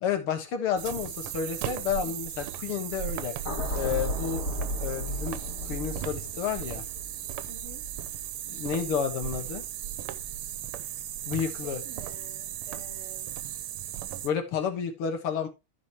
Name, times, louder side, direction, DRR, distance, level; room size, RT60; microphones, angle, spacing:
voice 1, 0.0-3.4 3.7-4.4 4.8-6.8 8.5-9.6 11.3-11.8 14.2-15.5, left 7 dB, 90° left, 2.3 m, -31 dB
sound 1, 0.8-14.3, right 12 dB, 85° right, 1.6 m, -36 dB
sound 2, 3.4-9.7 10.1-10.4, equal, 45° left, 3.4 m, -35 dB
voice 2, 7.5-7.8 11.6-13.3, equal, 30° right, 3.8 m, -48 dB
14.0 x 5.2 x 3.0 m
omnidirectional pair, 2.4 m